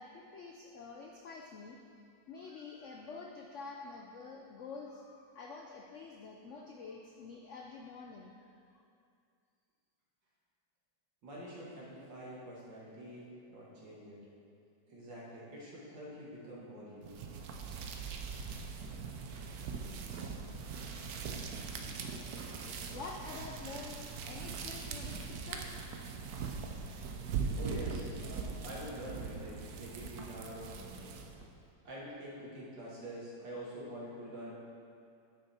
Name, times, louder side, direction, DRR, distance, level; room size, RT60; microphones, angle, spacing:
voice 1, 0.0-1.8 2.3-8.4 8.7-8.8 22.9-25.9, left 4 dB, 75° left, 0 dB, 0.6 m, -47 dB
voice 2, 11.2-14.2 14.9-17.1 27.5-31.1 31.8-34.5, equal, 80° right, -6 dB, 2.6 m, -46 dB
sound 1, 17.0-31.5, right 5 dB, 65° right, 1.0 m, -41 dB
9.8 x 6.3 x 4.3 m, 2.4 s
omnidirectional pair, 2.0 m